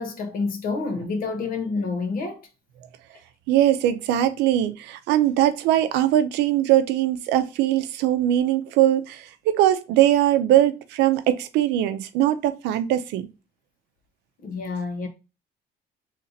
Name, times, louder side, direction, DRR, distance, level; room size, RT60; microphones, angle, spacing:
voice 1, 0.0-2.5 14.4-15.1, left 4 dB, 55° left, 1.2 m, -28 dB
voice 2, 3.5-13.3, right 12 dB, 90° right, 0.6 m, -21 dB
3.3 x 2.8 x 3.9 m
cardioid pair, 110°, 17 cm